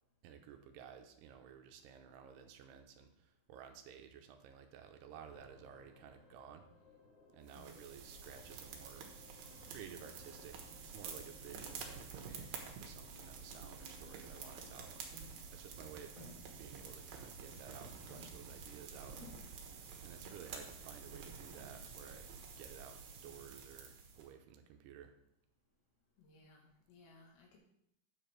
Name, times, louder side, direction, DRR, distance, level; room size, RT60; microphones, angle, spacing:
voice 1, 0.2-6.7 7.3-9.1 9.6-15.1 15.5-16.2 16.6-19.5 19.9-22.3 22.6-25.1, right 8 dB, 85° right, 6 dB, 2.7 m, -54 dB
sound 1, 5.2-23.7, left 2 dB, 50° left, 2.9 m, -65 dB
sound 2, 7.5-24.3, right 5 dB, 65° right, 2.8 m, -50 dB
voice 2, 7.6-7.9 26.2-27.6, left 2 dB, 80° left, 0 dB, 4.1 m, -62 dB
sound 3, 13.9-20.2, equal, 20° right, 1.7 m, -60 dB
9.6 x 6.9 x 4.5 m, 0.76 s
omnidirectional pair, 4.9 m